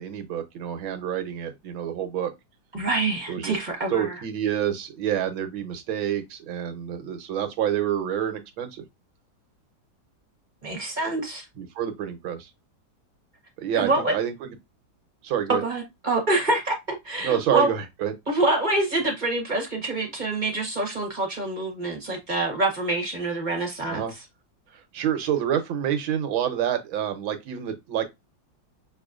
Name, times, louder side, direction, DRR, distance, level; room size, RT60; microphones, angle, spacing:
voice 1, 0.0-2.3 3.3-3.6 3.9-8.8 11.6-12.5 13.6-14.3 15.2-15.6 17.2-18.1 23.9-24.1 24.9-28.0, right 9 dB, 85° right, 1.7 m, -27 dB
voice 2, 2.7-4.1 10.6-11.4 13.7-14.1 15.5-17.7 18.3-24.0, right 2 dB, 30° right, 1.2 m, -26 dB
5.9 x 3.1 x 2.4 m
omnidirectional pair, 2.1 m